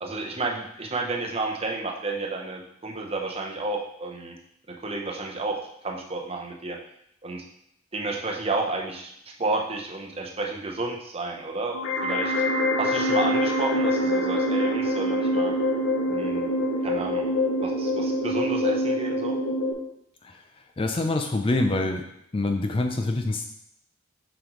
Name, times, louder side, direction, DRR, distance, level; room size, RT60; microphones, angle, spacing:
voice 1, 0.0-4.3 4.7-6.8 7.2-7.4 7.9-9.1 9.4-12.3 12.8-15.5 16.1-16.5 16.8-17.3 17.6-19.4, right 3 dB, 30° right, 1 dB, 0.8 m, -31 dB
sound 1, 11.7-19.7, left 1 dB, 80° left, 1.2 m, -25 dB
voice 2, 20.8-22.1 22.3-23.5, left 2 dB, 25° left, 5 dB, 0.4 m, -25 dB
7.4 x 5.1 x 3.1 m, 0.75 s
head